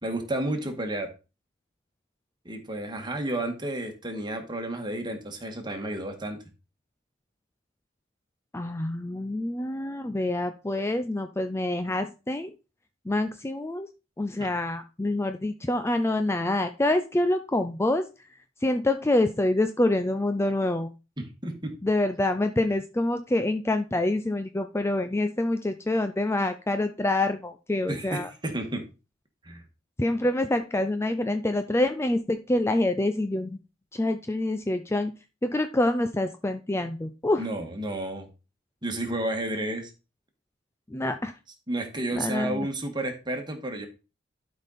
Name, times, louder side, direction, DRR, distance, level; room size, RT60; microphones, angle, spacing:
voice 1, 0.0-1.1 2.4-6.4 14.4-14.5 21.2-21.7 27.9-28.8 29.4-29.6 37.4-38.3 38.8-39.9 41.7-43.9, right 1 dB, 25° right, 4 dB, 1.8 m, -31 dB
voice 2, 8.5-12.5 13.1-13.9 14.2-18.0 18.6-20.9 21.8-28.3 30.0-33.6 33.9-35.1 35.4-37.5 40.9-41.3 42.1-42.7, left 1 dB, 15° left, 8 dB, 0.5 m, -26 dB
12.0 x 5.3 x 4.2 m, 0.30 s
head